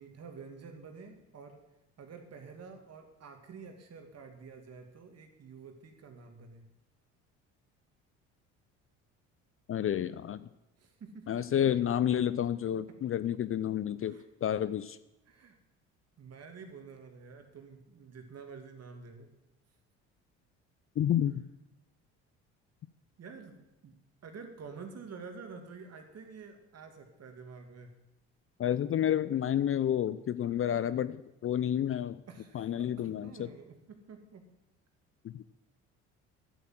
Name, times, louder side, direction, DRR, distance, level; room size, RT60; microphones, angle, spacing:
voice 1, 0.0-1.6 2.0-6.7 10.8-11.2 14.0-14.2 15.3-15.6 16.2-19.3 23.2-23.9 24.2-27.9 32.3-33.7 34.1-34.4, right 5 dB, 45° right, 5 dB, 2.6 m, -49 dB
voice 2, 9.7-10.5 11.3-15.0 21.0-21.4 28.6-31.2 31.4-32.2 32.5-33.5 35.2-35.4, left 10 dB, 40° left, 16 dB, 0.6 m, -30 dB
11.5 x 8.5 x 7.7 m, 0.93 s
hypercardioid pair, 65°, 35 cm